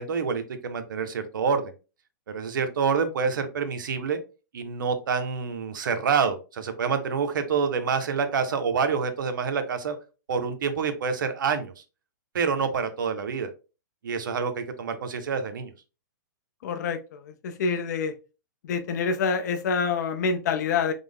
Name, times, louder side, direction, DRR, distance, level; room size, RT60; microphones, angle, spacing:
voice 1, 0.0-1.7 2.3-4.2 4.5-10.0 10.3-11.8 12.3-13.5 14.0-15.7, right 5 dB, 80° right, 9 dB, 0.6 m, -27 dB
voice 2, 16.6-18.1 18.6-20.9, left 5 dB, 60° left, 8 dB, 0.6 m, -27 dB
3.4 x 2.1 x 3.4 m, 0.32 s
hypercardioid pair, 150°, 10 cm